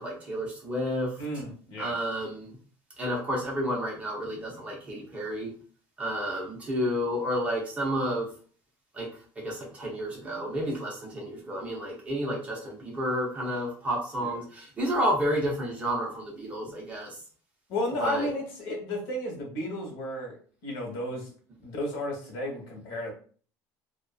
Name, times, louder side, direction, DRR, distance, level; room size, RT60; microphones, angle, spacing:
voice 1, 0.0-1.2 1.8-2.6 3.0-5.5 6.0-8.3 8.9-9.1 9.4-17.2 18.0-18.3, equal, 15° right, -2 dB, 0.8 m, -31 dB
voice 2, 1.2-2.0 14.2-14.3 17.7-20.4 20.6-21.3 21.6-23.1, left 1 dB, 85° left, 1 dB, 1.1 m, -33 dB
2.6 x 2.4 x 2.3 m, 0.42 s
cardioid pair, 175°, 8 cm